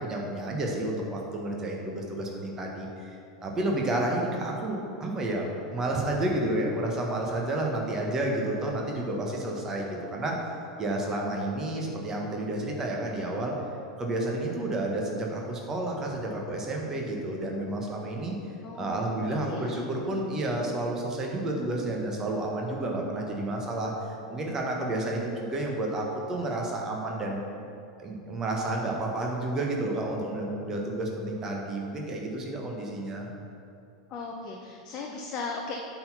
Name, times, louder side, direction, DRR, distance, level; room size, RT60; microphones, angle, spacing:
voice 1, 0.0-3.1 3.4-10.5 10.8-13.5 14.0-18.4 18.8-23.9 24.3-27.4 28.0-33.3, right 1 dB, 25° right, 0 dB, 1.4 m, -30 dB
voice 2, 18.6-19.1 19.4-19.8 34.1-35.8, left 4 dB, 35° left, 0 dB, 0.7 m, -37 dB
8.5 x 4.2 x 5.7 m, 2.6 s
figure-of-eight pair, 85°, 2 cm